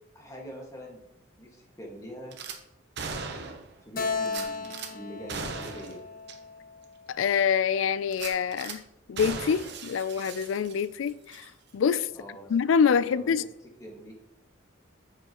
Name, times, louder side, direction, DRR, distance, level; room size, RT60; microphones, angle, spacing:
voice 1, 0.2-1.0 1.4-2.4 3.8-6.0 12.1-12.5 12.9-13.5 13.8-14.1, equal, 15° left, 1.8 m, -44 dB
Gunshot gunfire / Glass, 2.3-2.6 3.0-3.7 4.3-4.9 5.3-6.0 6.3-6.4 6.8-6.9 8.1-8.8 9.2-11.0 11.3-11.5, right 4 dB, 60° right, 0.9 m, -38 dB
Keyboard (musical), 3.9-7.4, left 4 dB, 50° left, 1.0 m, -35 dB
voice 2, 7.1-8.8 9.1-11.5 11.7-12.1 12.5-13.4, left 6 dB, 80° left, 0.4 m, -25 dB
8.7 x 7.0 x 3.0 m
head